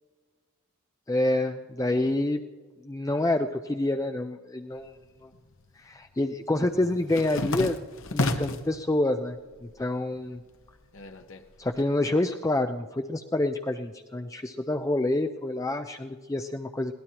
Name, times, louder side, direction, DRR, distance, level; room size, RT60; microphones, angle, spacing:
voice 1, 1.1-2.4 2.9-4.9 5.2-5.3 5.8-7.8 8.1-9.4 9.8-10.4 11.6-16.9, left 1 dB, 15° left, 6 dB, 0.4 m, -27 dB
sound 1, 4.8-5.6 5.9-8.7 9.2-9.9 10.2-11.8, left 2 dB, 60° left, 1.1 m, -32 dB
22.0 x 17.5 x 2.9 m, 1.4 s
head